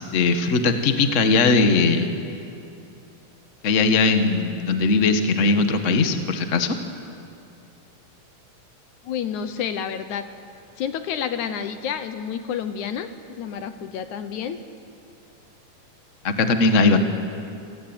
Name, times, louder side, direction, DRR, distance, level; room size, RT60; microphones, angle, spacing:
voice 1, 0.0-2.1 3.6-6.7 16.2-17.0, left 3 dB, 45° left, 7 dB, 1.0 m, -19 dB
voice 2, 9.1-10.3 10.8-14.6 16.9-17.0, left 8 dB, 70° left, 10 dB, 2.2 m, -29 dB
28.0 x 18.5 x 9.0 m, 2.7 s
omnidirectional pair, 3.9 m